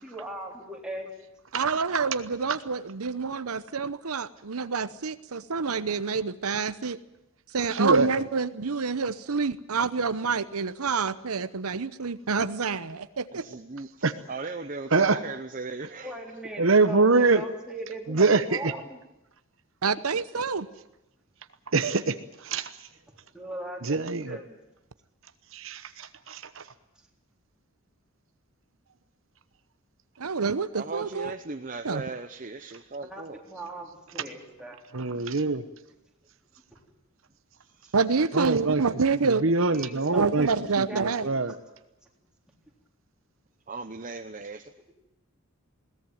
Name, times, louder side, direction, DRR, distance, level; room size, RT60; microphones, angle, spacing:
voice 1, 0.0-1.1 16.0-19.0 23.3-24.6 33.0-34.8 36.7-36.8 39.7-41.4, right 1 dB, 5° right, 0 dB, 3.7 m, -40 dB
voice 2, 1.5-7.0 7.5-13.4 19.8-20.7 30.2-31.3 31.8-32.0 37.9-39.4 40.1-41.3, right 5 dB, 85° right, 13 dB, 0.9 m, -27 dB
voice 3, 7.7-8.1 14.0-14.1 14.9-15.2 16.6-17.4 18.1-18.7 21.7-22.7 23.8-24.4 25.5-26.6 34.9-35.6 38.3-38.8 39.2-40.5 40.8-41.5, right 3 dB, 60° right, 11 dB, 1.0 m, -24 dB
voice 4, 13.3-16.4 30.7-33.4 37.7-38.0 43.7-44.7, right 3 dB, 35° right, 8 dB, 0.9 m, -38 dB
21.5 x 17.5 x 9.3 m, 0.92 s
head